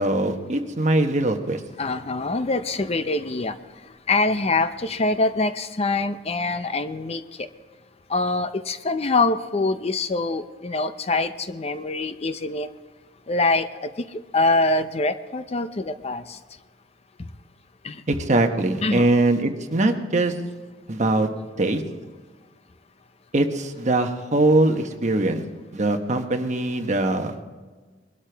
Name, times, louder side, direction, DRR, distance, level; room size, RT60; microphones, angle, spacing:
voice 1, 0.0-1.6 18.1-20.3 20.9-21.3 21.6-21.8 23.3-25.4 25.7-27.3, right 2 dB, 40° right, 5 dB, 1.1 m, -22 dB
voice 2, 1.8-3.6 4.1-7.5 8.1-12.7 13.3-16.4 17.8-18.0 18.8-19.1, left 3 dB, 35° left, 11 dB, 0.6 m, -24 dB
21.0 x 13.0 x 3.4 m, 1.4 s
head